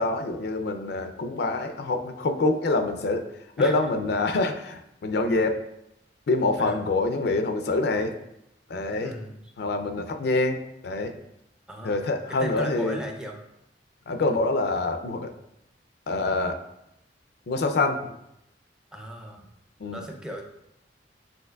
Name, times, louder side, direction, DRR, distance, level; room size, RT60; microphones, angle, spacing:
voice 1, 0.0-3.3 3.6-5.6 6.3-8.1 8.7-9.2 9.6-11.1 11.8-13.0 14.1-15.3 16.1-16.6 17.5-18.1 19.8-20.0, left 2 dB, 65° left, 6 dB, 0.4 m, -26 dB
voice 2, 9.0-9.4 11.7-12.0 12.4-13.4 18.9-19.5 19.9-20.5, equal, 5° right, 2 dB, 0.5 m, -36 dB
7.9 x 2.8 x 2.3 m, 0.83 s
head